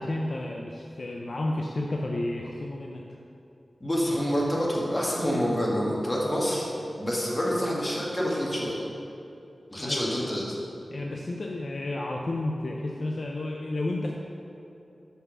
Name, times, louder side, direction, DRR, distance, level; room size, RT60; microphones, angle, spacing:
voice 1, 0.0-3.0 7.5-7.7 9.8-10.1 10.9-14.1, left 2 dB, 50° left, 0 dB, 0.5 m, -31 dB
voice 2, 3.8-6.7 7.0-8.8 9.7-10.6, equal, 20° left, -4 dB, 1.6 m, -27 dB
6.1 x 5.6 x 6.2 m, 2.7 s
wide cardioid pair, 95°, 0 cm